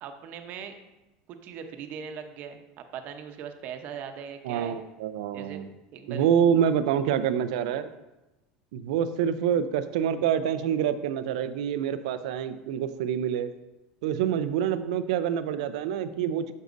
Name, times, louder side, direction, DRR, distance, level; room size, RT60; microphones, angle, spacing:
voice 1, 0.0-0.7 1.4-2.6 2.9-4.8 5.3-5.6 5.9-6.3, right 7 dB, 55° right, 6 dB, 0.8 m, -39 dB
voice 2, 4.4-5.7 6.1-7.9 8.7-13.5 14.0-16.5, right 9 dB, 80° right, 12 dB, 0.5 m, -26 dB
7.9 x 6.3 x 2.6 m, 1.0 s
supercardioid pair, 105°, 4 cm